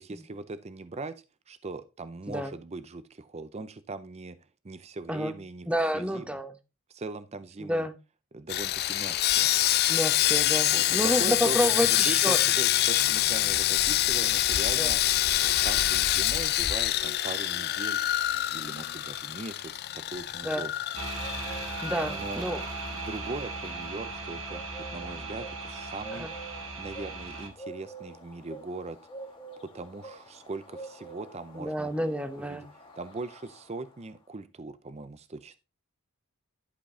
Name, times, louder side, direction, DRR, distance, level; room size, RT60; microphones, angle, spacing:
voice 1, 0.0-4.4 4.6-5.7 5.9-6.4 6.9-7.9 8.3-9.5 10.6-15.0 15.4-18.0 18.5-20.7 21.7-22.4 22.9-24.6 24.9-26.3 26.8-29.0 29.6-31.9 32.4-32.7 33.0-35.6, right 3 dB, 30° right, 13 dB, 0.5 m, -40 dB
voice 2, 5.7-6.5 7.6-7.9 9.9-12.4 14.8-14.9 20.4-20.7 21.8-22.6 26.1-26.3 31.5-32.6, equal, 5° right, 9 dB, 0.8 m, -29 dB
Sawing, 8.5-22.7 23.0-23.2 23.6-23.8, left 14 dB, 45° left, 0.4 m, -26 dB
sound 1, 19.7-34.2, right 2 dB, 25° left, 1.7 m, -48 dB
sound 2, 21.0-27.5, right 3 dB, 65° right, 2.6 m, -37 dB
11.5 x 5.1 x 3.7 m, 0.28 s
head